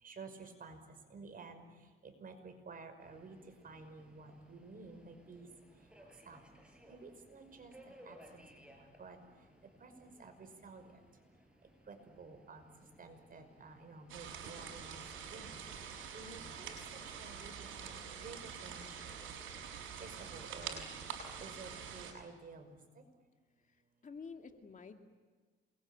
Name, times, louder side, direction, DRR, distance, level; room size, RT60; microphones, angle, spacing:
voice 1, 0.0-0.8 1.1-1.6 2.0-3.4 3.6-5.5 6.3-6.4 6.9-9.2 9.8-10.8 11.9-12.6 13.0-15.0 15.3-15.6 16.1-16.7 17.1-19.3 20.0-20.9 21.4-23.0, right 4 dB, 45° right, 7 dB, 5.7 m, -52 dB
Subway metro underground, 3.0-17.6, equal, 5° right, 7.1 m, -62 dB
sound 1, 14.1-22.1, right 7 dB, 85° right, 6.7 m, -46 dB
voice 2, 23.6-25.0, left 5 dB, 40° left, 5 dB, 2.4 m, -50 dB
27.5 x 22.5 x 9.1 m, 1.4 s
cardioid pair, 90°, 20 cm